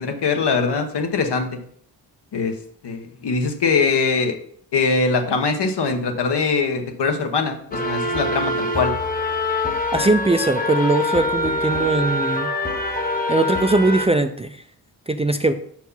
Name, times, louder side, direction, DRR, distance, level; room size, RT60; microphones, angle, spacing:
voice 1, 0.0-1.6 2.3-2.5 2.8-4.4 4.7-8.9, left 4 dB, 80° left, 5 dB, 1.1 m, -22 dB
sound 1, 7.7-14.1, left 2 dB, 20° left, 0.9 m, -24 dB
voice 2, 9.9-12.5 13.3-14.6 15.1-15.5, right 2 dB, 15° right, 7 dB, 0.3 m, -20 dB
5.7 x 4.6 x 5.5 m, 0.62 s
wide cardioid pair, 100°, 40 cm